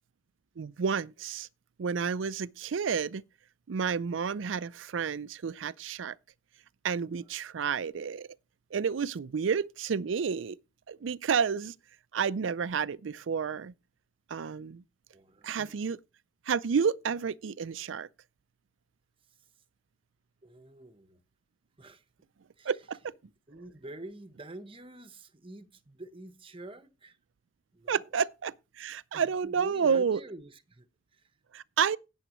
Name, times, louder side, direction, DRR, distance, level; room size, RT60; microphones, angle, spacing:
voice 1, 0.6-1.5 1.8-3.2 3.7-6.2 6.8-8.3 8.7-10.6 10.9-11.7 12.1-13.7 14.3-14.8 15.4-16.0 16.5-18.1 22.6-23.1 27.9-30.2 31.5-32.0, right 6 dB, 85° right, 0.4 m, -30 dB
voice 2, 15.1-15.7 20.4-21.2 21.8-22.0 22.6-22.7 23.5-27.2 27.7-28.0 29.1-30.9 31.1-31.3, right 2 dB, 30° right, 1.0 m, -47 dB
17.0 x 7.1 x 3.0 m
head